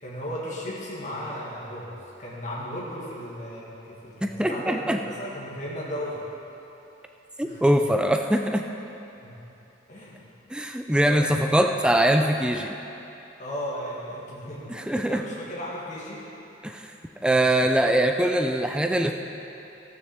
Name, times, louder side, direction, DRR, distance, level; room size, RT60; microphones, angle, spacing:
voice 1, 0.0-6.3 7.4-7.6 9.2-9.3 9.9-10.2 11.0-11.6 13.4-16.2, equal, 40° left, -7 dB, 2.0 m, -36 dB
voice 2, 4.2-5.0 7.4-8.6 10.5-12.7 14.7-15.2 16.6-16.9 17.2-19.1, right 1 dB, 5° right, 4 dB, 0.4 m, -22 dB
13.5 x 6.8 x 7.1 m, 2.9 s
head